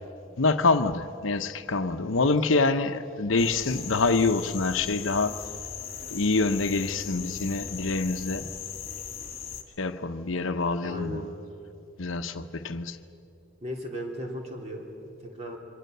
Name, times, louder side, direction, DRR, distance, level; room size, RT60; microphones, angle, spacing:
voice 1, 0.4-5.4 6.1-8.5 9.8-11.2 12.0-13.0, left 3 dB, 70° left, 0.9 m, -26 dB
sound 1, 3.4-9.6, left 7 dB, 30° left, 2.2 m, -38 dB
voice 2, 10.8-11.3 13.6-14.8 15.2-15.6, equal, 30° right, 3.6 m, -36 dB
28.0 x 24.0 x 6.8 m
head